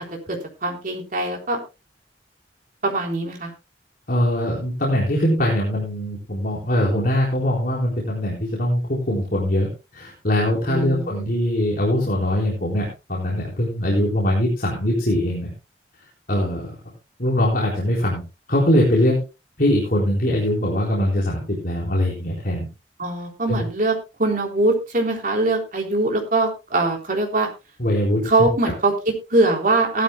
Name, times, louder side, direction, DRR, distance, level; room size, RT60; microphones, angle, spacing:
voice 1, 0.3-1.6 2.8-3.5 10.7-11.3 23.0-23.9 24.2-27.5 28.2-30.0, right 2 dB, 50° right, 1 dB, 3.8 m, -22 dB
voice 2, 4.1-15.5 16.3-16.8 17.2-18.2 18.5-19.2 19.6-22.7 23.5-23.6 27.8-28.5, left 1 dB, 55° left, -4 dB, 4.1 m, -22 dB
18.0 x 12.5 x 2.2 m, 0.28 s
head